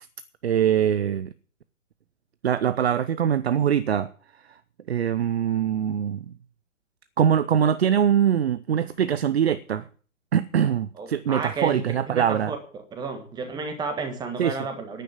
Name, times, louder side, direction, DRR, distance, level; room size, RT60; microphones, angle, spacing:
voice 1, 0.4-1.3 2.4-4.1 4.9-6.3 7.2-9.9 10.3-12.5 14.4-14.6, right 9 dB, 50° right, 0.8 m, -23 dB
voice 2, 11.0-11.8 12.1-12.6 12.9-15.0, right 4 dB, 10° right, 1.5 m, -32 dB
10.5 x 9.1 x 8.7 m
figure-of-eight pair, 125°, 40 cm